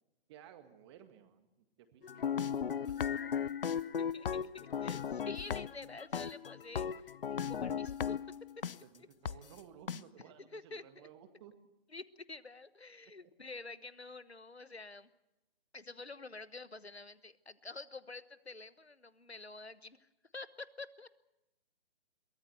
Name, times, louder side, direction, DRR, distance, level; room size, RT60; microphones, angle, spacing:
voice 1, 0.3-3.1 3.7-3.8 8.8-11.5 13.0-13.1, right 9 dB, 25° right, 9 dB, 1.9 m, -57 dB
sound 1, 2.0-8.7 9.2-9.3 9.9-10.0, left 7 dB, 60° left, 0.7 m, -36 dB
voice 2, 4.0-7.1 7.5-8.2 8.6-9.1 10.2-11.1 11.9-15.1 15.7-21.1, left 3 dB, 90° left, 16 dB, 1.2 m, -49 dB
23.0 x 18.0 x 8.0 m, 0.92 s
figure-of-eight pair, 135°, 31 cm